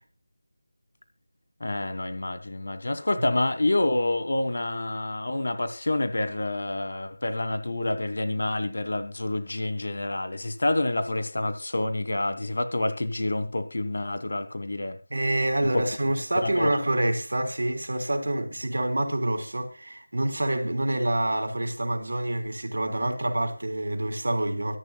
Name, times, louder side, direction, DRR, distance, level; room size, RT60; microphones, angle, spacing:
voice 1, 1.6-15.0 15.7-15.8 16.4-16.7, left 2 dB, 55° left, 2.4 m, -28 dB
voice 2, 15.1-24.8, right 1 dB, 60° right, 3.4 m, -27 dB
24.0 x 11.5 x 2.3 m
figure-of-eight pair, 165°, 0 cm